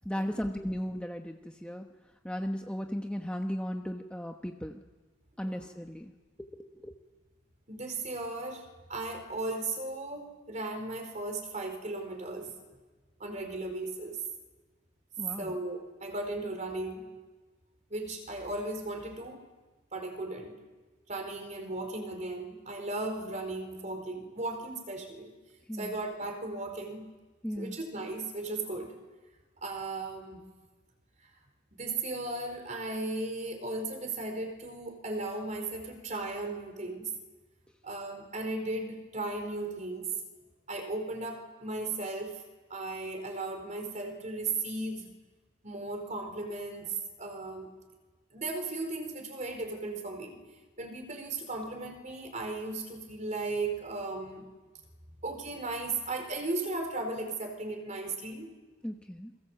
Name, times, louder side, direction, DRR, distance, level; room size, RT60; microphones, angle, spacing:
voice 1, 0.0-1.8 2.2-4.8 5.4-6.1 6.5-6.9 15.2-15.5 25.7-26.0 27.4-27.8 58.8-59.3, equal, 5° left, 3 dB, 1.1 m, -36 dB
voice 2, 7.7-12.5 13.2-14.2 15.4-17.1 17.9-19.4 19.9-20.6 21.1-25.3 25.7-27.1 27.6-29.0 29.6-30.4 31.8-37.1 37.8-40.1 40.7-42.4 42.7-45.1 45.6-47.7 48.3-50.4 50.8-54.4 55.2-58.5, right 2 dB, 40° right, 4 dB, 4.5 m, -36 dB
29.5 x 23.0 x 7.9 m, 1.3 s
head